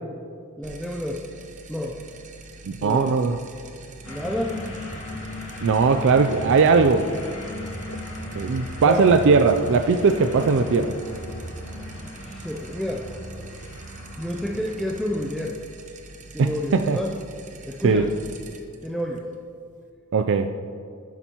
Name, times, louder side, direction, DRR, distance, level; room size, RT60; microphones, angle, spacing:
voice 1, 0.6-1.2 1.7-2.0 2.8-3.2 4.1-4.6 8.8-9.0 12.2-13.1 14.2-15.6 16.3-17.1 17.7-18.1 18.8-19.2, left 1 dB, ahead, -2 dB, 0.5 m, -29 dB
sound 1, 0.6-19.9, right 3 dB, 35° right, 0.8 m, -45 dB
voice 2, 2.6-3.4 5.6-7.1 8.3-10.9 16.4-17.0 17.8-18.0 20.1-20.5, right 4 dB, 60° right, 7 dB, 0.4 m, -19 dB
sound 2, 4.0-15.5, left 1 dB, 75° left, 1.6 m, -37 dB
11.5 x 9.9 x 2.9 m, 2.3 s
head